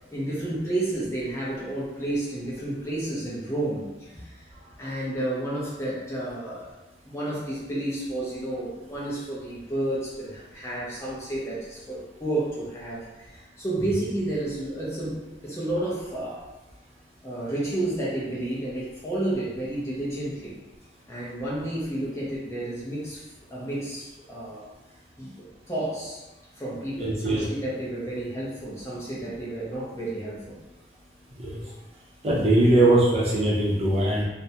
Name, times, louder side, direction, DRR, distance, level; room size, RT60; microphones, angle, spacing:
voice 1, 0.1-4.4 4.8-6.7 7.0-16.4 17.2-20.6 21.1-23.2 23.5-24.6 25.2-26.2 26.6-30.6, right 1 dB, 15° left, -7 dB, 0.5 m, -31 dB
voice 2, 27.0-27.5 31.4-31.6 32.2-34.2, right 1 dB, 35° right, -6 dB, 0.5 m, -21 dB
2.3 x 2.0 x 2.7 m, 1.1 s
head